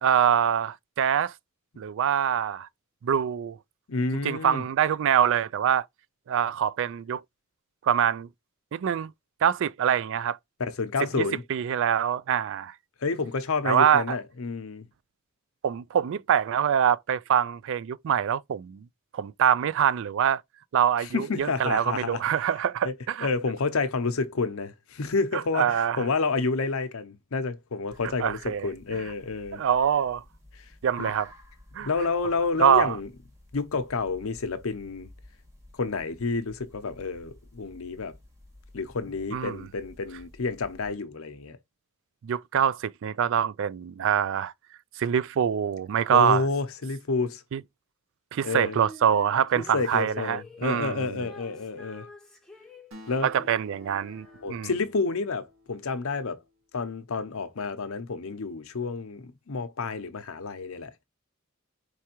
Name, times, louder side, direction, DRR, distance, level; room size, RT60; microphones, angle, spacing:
voice 1, 0.0-1.3 1.8-2.7 3.0-3.6 4.2-5.9 6.3-7.2 7.8-8.3 8.7-9.1 9.4-10.4 11.2-12.7 13.6-14.2 15.6-18.9 19.1-20.4 20.7-23.3 25.3-26.0 28.2-28.7 29.5-30.2 30.8-31.3 31.7-31.9 32.6-33.0 39.3-39.7 42.2-44.5 45.0-46.4 47.5-47.6 48.3-51.1 53.2-54.7, right 8 dB, 65° right, 0.3 m, -24 dB
voice 2, 3.9-4.6 10.7-11.4 13.0-14.9 21.0-22.2 22.8-22.9 23.2-29.6 30.6-30.7 31.0-31.1 31.8-33.1 33.5-35.1 35.7-38.1 38.7-41.6 46.1-47.4 48.4-48.8 49.5-52.1 53.1-53.3 54.4-56.4 56.7-60.9, left 4 dB, 70° left, 0.7 m, -29 dB
sound 1, 27.9-40.9, left 1 dB, 15° right, 1.9 m, -51 dB
Female singing, 48.4-54.9, left 2 dB, 5° left, 1.0 m, -49 dB
Acoustic guitar, 52.9-56.6, left 1 dB, 85° right, 1.9 m, -52 dB
4.7 x 3.3 x 2.9 m
head